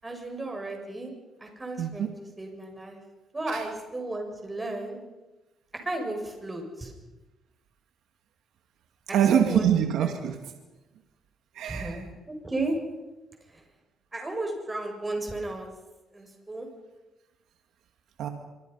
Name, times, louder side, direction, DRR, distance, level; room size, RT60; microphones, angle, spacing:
voice 1, 0.0-1.1 1.4-2.1 2.4-3.0 3.3-5.0 5.8-6.9 9.1-9.7 10.0-10.2 11.6-12.1 12.4-12.8 13.5-13.6 14.1-15.7 16.1-16.7, right 2 dB, 20° right, 3 dB, 7.0 m, -34 dB
voice 2, 1.8-2.1 3.5-3.6 9.1-10.5 11.5-12.0 18.2-18.3, right 9 dB, 80° right, 5 dB, 2.1 m, -24 dB
25.5 x 23.5 x 5.7 m, 1.1 s
cardioid pair, 90°, 0 cm